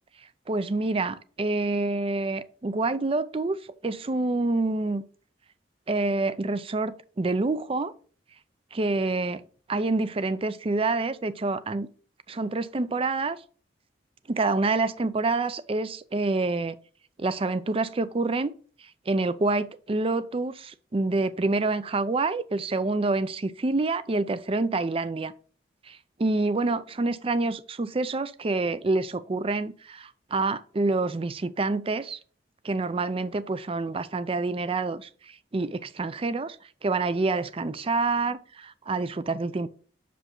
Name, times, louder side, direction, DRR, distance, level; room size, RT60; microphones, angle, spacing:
voice 1, 0.5-3.6 3.8-5.0 5.9-7.9 8.7-9.4 9.7-11.9 12.3-13.4 14.3-16.8 17.2-18.5 19.1-25.3 25.9-32.2 32.6-36.6 36.8-39.7, right 3 dB, 30° right, 0.4 m, -27 dB
6.6 x 5.1 x 3.7 m
head